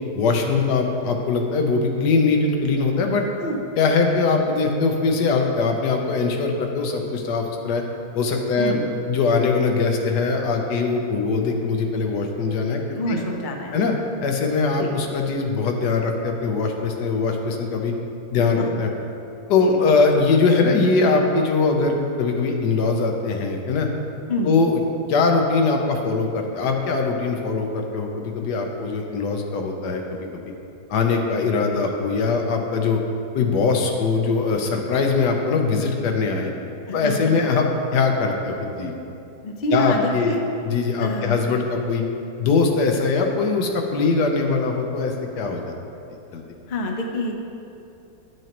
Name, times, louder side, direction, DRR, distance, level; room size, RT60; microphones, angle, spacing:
voice 1, 0.2-3.3 3.8-7.8 8.1-8.8 9.1-13.2 13.7-13.9 14.2-17.9 18.3-18.9 19.5-23.9 24.4-24.8 25.1-30.0 30.9-33.0 33.3-36.5 36.9-38.9 39.7-40.4 40.6-42.0 42.4-45.7 46.3-46.4, left 4 dB, 85° left, 2 dB, 1.4 m, -21 dB
voice 2, 13.0-13.9 14.8-14.9 18.6-18.7 19.6-19.8 24.3-24.5 36.9-37.5 39.4-40.4 41.0-41.4 46.7-47.3, left 1 dB, 45° left, 1 dB, 0.6 m, -26 dB
10.5 x 6.1 x 2.9 m, 2.9 s
omnidirectional pair, 1.7 m